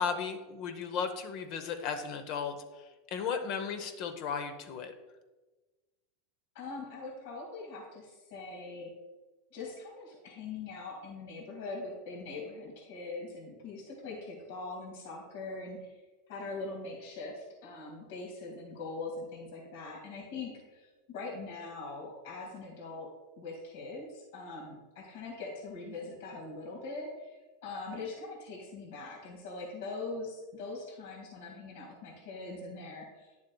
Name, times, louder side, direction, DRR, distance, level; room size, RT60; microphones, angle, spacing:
voice 1, 0.0-2.6 3.1-4.9, left 6 dB, 55° left, 7 dB, 0.8 m, -35 dB
voice 2, 6.6-8.9 9.5-16.0 16.3-23.1 23.4-27.4 27.6-33.3, left 3 dB, 70° left, -1 dB, 2.0 m, -42 dB
10.0 x 7.1 x 2.3 m, 1.2 s
hypercardioid pair, 115°, 0 cm